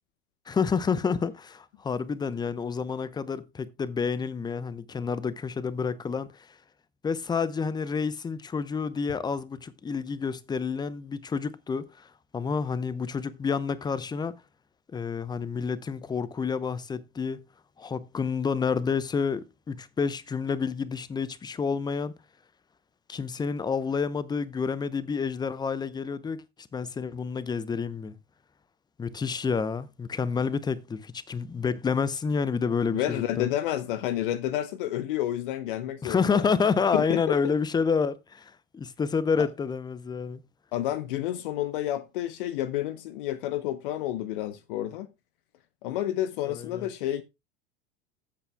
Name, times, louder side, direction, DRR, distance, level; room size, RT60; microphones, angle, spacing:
voice 1, 0.5-6.5 7.0-14.4 14.9-17.4 17.8-22.1 23.1-28.2 29.0-33.5 36.0-40.4 46.5-46.9, left 5 dB, 15° left, 0.7 m, -29 dB
voice 2, 32.9-36.4 36.9-37.5 40.7-45.1 45.8-47.2, left 13 dB, 55° left, 1.0 m, -30 dB
15.0 x 8.0 x 2.3 m
figure-of-eight pair, 80°, 31 cm